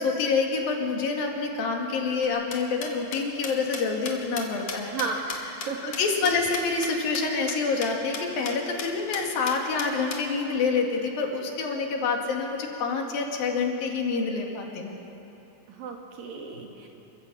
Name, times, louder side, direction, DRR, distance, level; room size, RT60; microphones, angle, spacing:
voice 1, 0.0-4.9 5.8-15.0, left 4 dB, 85° left, 1 dB, 3.9 m, -27 dB
sound 1, 2.2-6.9 7.1-7.2 7.5-7.6 7.8-7.9 8.1-8.5 8.8-8.9 9.1-10.2, left 5 dB, 50° left, 2.5 m, -35 dB
voice 2, 4.8-5.4 5.7-5.9 6.2-6.3 15.7-16.9, right 4 dB, 75° right, 1 dB, 3.9 m, -34 dB
29.0 x 14.5 x 8.1 m, 3.0 s
omnidirectional pair, 4.1 m